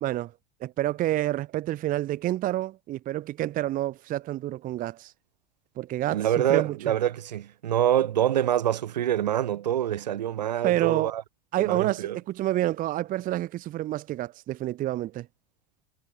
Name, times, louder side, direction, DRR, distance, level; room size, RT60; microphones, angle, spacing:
voice 1, 0.0-0.3 0.6-5.1 5.8-6.9 10.6-11.1 11.5-15.3, right 14 dB, 40° right, 0.7 m, -28 dB
voice 2, 6.1-11.2 11.6-12.2, right 11 dB, 85° right, 1.9 m, -26 dB
hypercardioid pair, 85°, 21 cm